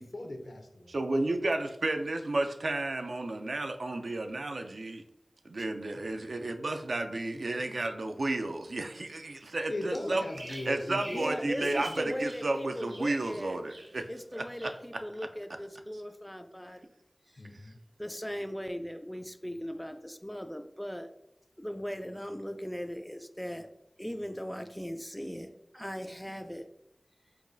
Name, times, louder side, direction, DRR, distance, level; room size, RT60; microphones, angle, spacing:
voice 1, 0.0-0.9 5.6-5.7 5.9-6.1 6.4-6.5 9.7-12.1 17.4-17.8, left 1 dB, 75° left, 4 dB, 0.5 m, -40 dB
voice 2, 0.9-5.0 5.4-10.2 10.7-14.1 14.3-15.0, right 2 dB, 85° right, 6 dB, 0.3 m, -32 dB
Bird vocalization bird call bird song, 9.9-12.5 12.8-13.4 13.7-14.2 14.6-14.8, right 1 dB, 45° right, 0.7 m, -45 dB
voice 3, 11.0-13.6 14.1-16.9 17.3-17.4 18.0-21.1 21.6-23.7 24.0-26.7, equal, 5° left, 8 dB, 0.3 m, -39 dB
4.7 x 2.3 x 2.5 m, 0.79 s
wide cardioid pair, 55°, 0 cm